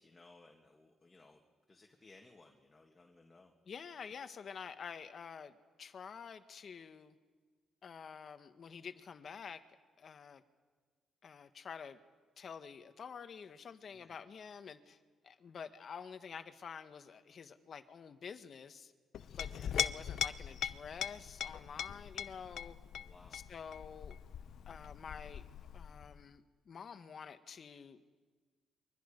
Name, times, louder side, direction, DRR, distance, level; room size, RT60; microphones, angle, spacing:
voice 1, 0.0-1.4 1.7-3.5 13.9-14.2 19.5-19.8 22.9-23.4, left 3 dB, 25° left, 1 dB, 2.3 m, -61 dB
voice 2, 3.7-7.2 7.8-9.6 10.0-10.4 11.2-12.0 12.4-15.0 15.2-18.9 19.3-22.8 23.3-24.2 24.7-25.4 25.7-28.0, left 6 dB, 50° left, 9 dB, 1.4 m, -49 dB
Chink clink, 19.1-26.3, left 9 dB, 65° left, 0.7 m, -41 dB
29.5 x 23.5 x 5.3 m, 1.5 s
cardioid pair, 90°, 0 cm